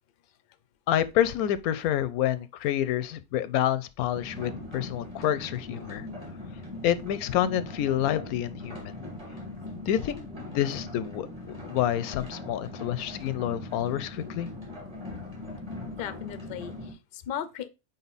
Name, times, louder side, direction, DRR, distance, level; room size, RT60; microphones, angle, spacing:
voice 1, 0.9-6.1 6.8-8.9 9.9-14.5, left 11 dB, 85° left, 1.1 m, -28 dB
sound 1, 4.1-16.9, left 2 dB, 20° right, 1.8 m, -40 dB
voice 2, 16.0-17.7, left 10 dB, 55° left, 0.6 m, -36 dB
5.4 x 4.5 x 4.0 m
omnidirectional pair, 1.5 m